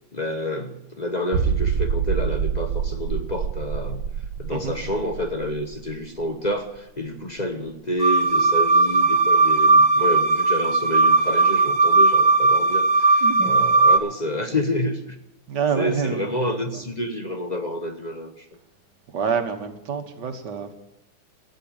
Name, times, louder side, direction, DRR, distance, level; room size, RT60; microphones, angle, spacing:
voice 1, 0.1-4.0 4.4-15.2 15.7-18.5, left 1 dB, 35° left, 6 dB, 0.7 m, -29 dB
sound 1, 1.3-6.8 7.1-7.2 7.7-7.8, right 7 dB, 75° right, 1.7 m, -27 dB
sound 2, 8.0-14.0, right 3 dB, 35° right, 1.4 m, -17 dB
voice 2, 13.2-13.7 15.5-16.5 19.1-20.7, right 6 dB, 60° right, 7 dB, 1.9 m, -27 dB
14.5 x 9.1 x 8.9 m, 0.87 s
omnidirectional pair, 2.3 m